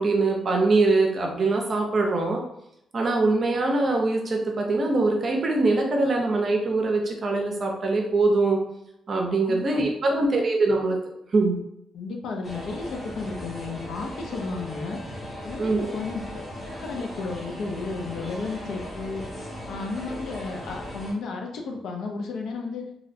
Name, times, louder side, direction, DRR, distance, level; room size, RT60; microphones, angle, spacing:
voice 1, 0.0-2.4 2.9-8.6 9.1-11.0 11.3-11.6 15.6-15.9, right 3 dB, 40° right, 1 dB, 0.5 m, -23 dB
voice 2, 9.4-9.8 11.9-15.0 15.4-16.4 16.8-19.3 19.7-22.9, left 4 dB, 75° left, 2 dB, 0.5 m, -33 dB
sound 1, 12.4-21.1, equal, 35° left, 0.9 m, -38 dB
2.6 x 2.0 x 2.6 m, 0.79 s
cardioid pair, 110°, 0 cm